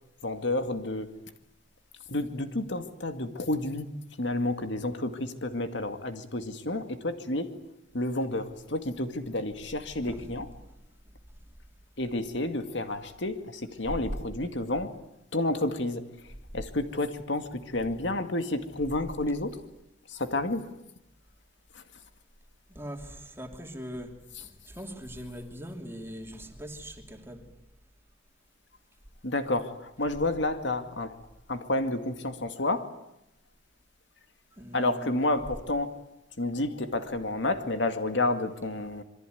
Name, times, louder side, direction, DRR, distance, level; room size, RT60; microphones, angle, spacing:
voice 1, 0.2-1.1 2.1-3.9 4.2-7.5 7.9-10.5 12.0-14.9 15.3-16.0 16.5-19.6 20.1-20.6 29.2-31.1 31.5-32.9 34.7-36.0 36.4-39.0, left 2 dB, 65° left, 8 dB, 2.2 m, -30 dB
voice 2, 10.0-10.3 22.7-27.4 34.6-35.3, equal, 10° right, 4 dB, 3.0 m, -41 dB
27.0 x 23.0 x 9.3 m, 0.84 s
head